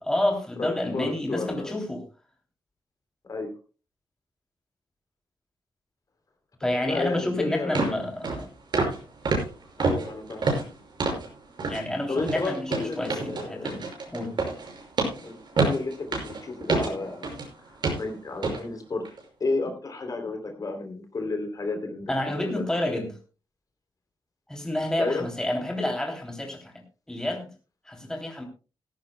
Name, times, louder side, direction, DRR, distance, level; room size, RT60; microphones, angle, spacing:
voice 1, 0.1-2.0 6.6-8.5 11.6-14.3 22.1-23.1 24.5-26.7 27.1-27.5 27.9-28.5, left 1 dB, 5° left, 2 dB, 3.1 m, -29 dB
voice 2, 0.6-1.7 3.3-3.5 6.6-8.1 9.8-10.5 12.1-13.7 15.2-17.3 17.9-19.1 19.4-22.1 22.4-22.7 25.0-25.3, left 3 dB, 45° left, 4 dB, 3.2 m, -31 dB
sound 1, 7.1-7.2 7.8-8.0 8.2-8.4 8.7-9.0 9.3-11.3 11.6-11.8 12.2-17.5 17.8-18.1 18.4-18.6 19.1-19.2, right 3 dB, 60° right, 5.7 m, -28 dB
17.0 x 15.0 x 2.3 m, 0.33 s
wide cardioid pair, 140°, 9 cm